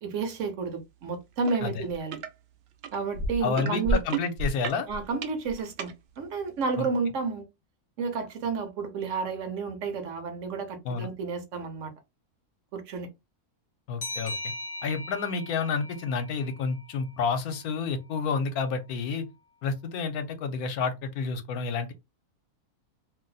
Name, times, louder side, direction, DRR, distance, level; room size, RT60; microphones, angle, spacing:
voice 1, 0.0-2.2 2.9-4.0 4.9-7.5 8.0-11.9 12.7-13.1, right 4 dB, 60° right, 0.9 m, -31 dB
sound 1, 1.4-1.6 1.9-2.3 2.8-5.9 6.6-6.7, right 3 dB, 85° right, 0.5 m, -30 dB
voice 2, 3.4-4.9 6.8-6.9 10.8-11.1 13.9-14.3 14.8-19.2 19.6-21.9, left 5 dB, 75° left, 1.1 m, -30 dB
sound 2, 14.0-17.3, left 2 dB, 40° left, 0.4 m, -39 dB
2.7 x 2.0 x 3.8 m
omnidirectional pair, 1.6 m